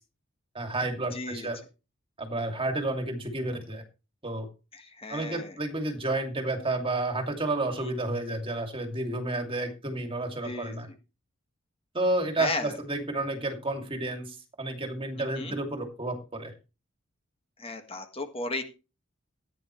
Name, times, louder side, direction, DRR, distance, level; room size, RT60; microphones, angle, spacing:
voice 1, 0.5-1.6 2.2-3.8 4.2-4.5 5.1-10.9 11.9-16.5, right 2 dB, 25° right, 5 dB, 2.5 m, -31 dB
voice 2, 1.1-1.5 4.7-5.5 7.8-7.9 10.4-10.7 12.4-12.7 15.2-15.6 17.6-18.6, left 2 dB, 30° left, 6 dB, 1.6 m, -35 dB
16.0 x 9.7 x 3.1 m, 0.30 s
head